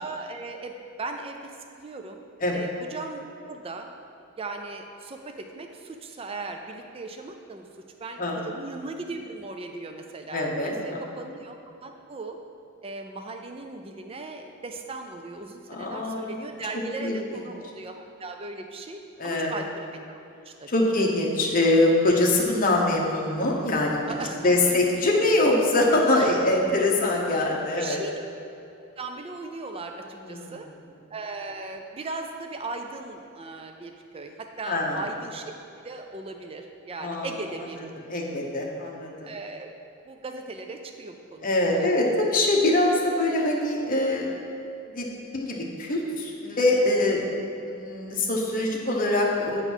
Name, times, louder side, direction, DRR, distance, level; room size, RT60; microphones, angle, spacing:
voice 1, 0.0-2.3 2.5-3.9 4.4-7.7 8.0-11.5 11.8-12.4 12.8-20.2 20.5-20.7 21.0-21.1 24.1-24.9 26.2-26.3 27.8-28.1 29.0-30.7 31.1-35.5 35.8-37.8 39.2-39.7 40.1-41.5 41.8-41.9, right 3 dB, 25° right, 4 dB, 0.4 m, -38 dB
voice 2, 10.3-11.0 15.7-16.4 17.0-17.4 19.2-19.6 20.7-24.0 24.4-28.0 30.1-30.6 34.6-35.0 37.0-37.3 38.1-39.3 41.4-44.4 44.9-45.1 45.3-47.2 47.6-49.6, left 2 dB, 40° left, -1 dB, 1.0 m, -23 dB
9.0 x 4.0 x 6.1 m, 2.7 s
head